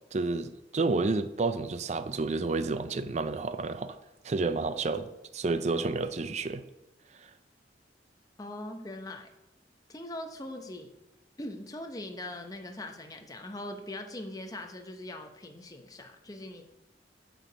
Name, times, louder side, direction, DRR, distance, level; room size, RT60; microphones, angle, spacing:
voice 1, 0.1-4.0 4.2-6.6, right 3 dB, 40° right, 11 dB, 0.5 m, -30 dB
voice 2, 8.4-9.3 9.9-10.9 11.4-16.7, left 1 dB, 20° left, 5 dB, 0.9 m, -41 dB
9.1 x 4.8 x 6.7 m, 0.91 s
head